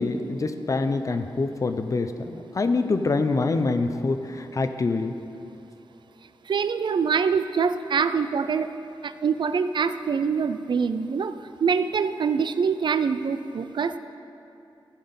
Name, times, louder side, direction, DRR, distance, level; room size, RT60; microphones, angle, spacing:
voice 1, 0.0-5.1, left 3 dB, 40° left, 9 dB, 0.5 m, -25 dB
voice 2, 6.5-8.7 9.0-11.3 11.6-14.0, right 6 dB, 60° right, 12 dB, 0.3 m, -24 dB
15.0 x 5.7 x 5.2 m, 2.8 s
wide cardioid pair, 150°, 9 cm